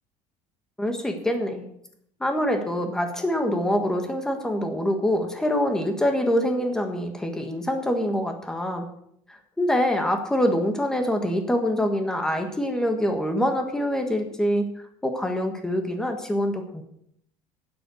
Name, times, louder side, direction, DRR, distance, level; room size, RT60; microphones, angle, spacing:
voice 1, 0.8-1.7 2.2-8.9 9.3-14.7 15.0-16.8, equal, 5° left, 5 dB, 1.5 m, -25 dB
11.5 x 9.9 x 6.4 m, 0.71 s
cardioid pair, 175°, 11 cm